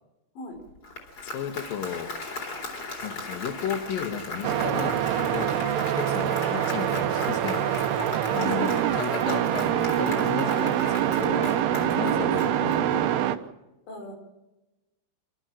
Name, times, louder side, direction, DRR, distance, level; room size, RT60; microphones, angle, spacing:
Applause, 0.7-13.2, left 3 dB, 35° left, 4.1 m, -38 dB
voice 1, 1.2-2.1 3.0-5.5 5.9-7.6 8.3-13.1, left 8 dB, 60° left, 7 dB, 3.0 m, -34 dB
sound 1, 4.4-13.4, right 11 dB, 80° right, 2.9 m, -25 dB
voice 2, 4.9-5.2 8.0-8.1 8.3-8.9 10.4-10.7 11.6-11.7 12.1-12.8 13.9-14.1, left 3 dB, 90° left, 3 dB, 6.8 m, -38 dB
29.0 x 12.5 x 7.6 m, 1.0 s
omnidirectional pair, 5.0 m